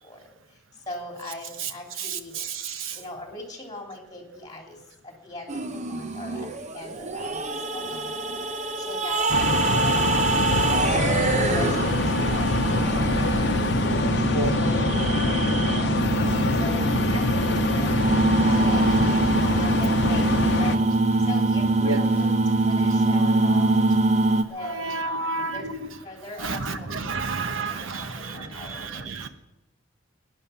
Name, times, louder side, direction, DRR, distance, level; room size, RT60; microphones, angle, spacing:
voice 1, 0.0-2.4 2.9-8.1 8.5-12.9 13.7-18.1 18.5-23.7 24.5-25.7 26.0-27.1 27.4-29.3, left 1 dB, 20° left, 3.2 m, -40 dB
voice 2, 2.0-3.0 14.3-14.5 18.4-18.8 19.4-19.6 21.8-22.0 24.6-25.7 26.4-29.3, right 3 dB, 90° right, 1.1 m, -31 dB
sound 1, 5.5-24.4, right 2 dB, 35° right, 0.8 m, -24 dB
sound 2, 9.3-20.8, left 3 dB, 60° left, 0.8 m, -25 dB
sound 3, 17.7-24.2, equal, 10° right, 3.9 m, -47 dB
19.5 x 9.8 x 5.8 m
head